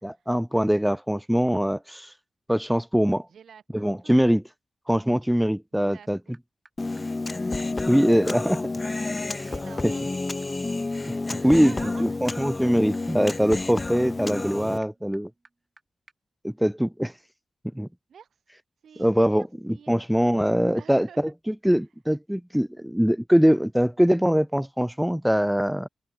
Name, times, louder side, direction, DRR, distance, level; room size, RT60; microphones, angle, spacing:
voice 1, 0.0-2.1 2.5-3.3 3.7-4.4 4.9-6.2 7.9-8.7 9.3-9.5 11.1-11.2 11.4-11.7 12.0-15.3 16.4-17.1 17.7-17.9 19.0-19.4 19.9-25.9, equal, ahead, 0.5 m, -22 dB
voice 2, 3.3-4.2 5.2-5.3 5.7-6.4 9.4-10.4 11.3-12.2 18.1-18.4 18.8-20.0 20.7-21.3, right 7 dB, 70° right, 7.7 m, -49 dB
sound 1, 6.0-6.1 6.3-6.4 6.6-6.7 7.0-7.1 7.3-7.4 7.6-7.7 7.9-8.0 8.2-8.3 8.5-15.8 16.1-16.2, right 3 dB, 25° right, 7.1 m, -59 dB
Human voice, 6.8-14.8, left 2 dB, 20° left, 1.2 m, -30 dB
wide cardioid pair, 135°, 0 cm